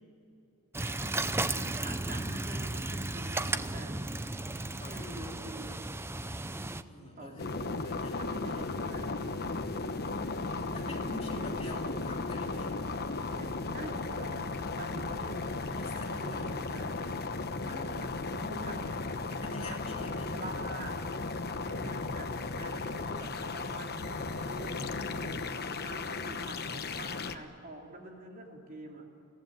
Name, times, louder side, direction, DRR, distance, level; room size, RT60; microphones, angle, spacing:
sound 1, 0.7-6.8, right 2 dB, 10° right, 0.6 m, -34 dB
voice 1, 1.0-4.0 4.8-5.8 6.8-7.9 8.2-9.2 11.0-12.0 13.4-15.4 15.7-17.0 17.6-18.2 18.5-18.9 19.5-19.8 20.3-21.0 21.6-22.3 22.6-24.9 25.6-29.1, right 2 dB, 40° right, 1 dB, 3.2 m, -47 dB
voice 2, 4.4-5.7 6.8-8.9 10.3-12.8 15.7-16.6 18.0-18.7 19.3-20.3, left 2 dB, 30° left, 0 dB, 3.0 m, -46 dB
sound 2, 7.4-27.4, left 3 dB, 45° left, 1.1 m, -35 dB
23.0 x 17.0 x 9.4 m, 2.5 s
head